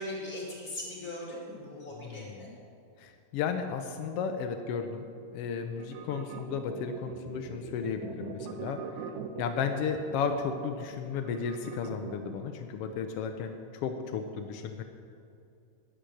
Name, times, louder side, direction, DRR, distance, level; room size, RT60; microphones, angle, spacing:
voice 1, 0.0-2.5, left 1 dB, 30° left, -4 dB, 2.6 m, -39 dB
voice 2, 2.0-2.5 3.0-5.0 5.3-8.8 9.4-14.8, left 6 dB, 90° left, 6 dB, 1.3 m, -34 dB
sound 1, 5.8-12.5, right 7 dB, 80° right, 2.1 m, -42 dB
10.5 x 10.0 x 6.3 m, 2.5 s
omnidirectional pair, 3.4 m